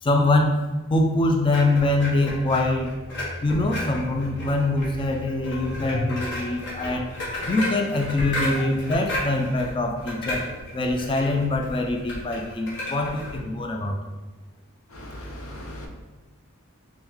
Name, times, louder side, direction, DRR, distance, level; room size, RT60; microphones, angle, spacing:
voice 1, 0.0-2.9 3.4-7.1 7.5-10.5 10.7-14.0, left 2 dB, 25° left, 2 dB, 0.3 m, -24 dB
sound 1, 1.5-13.4, left 1 dB, 55° left, 1.0 m, -33 dB
voice 2, 14.9-15.9, left 1 dB, 75° left, 0 dB, 0.7 m, -38 dB
3.6 x 3.0 x 3.1 m, 1.2 s
head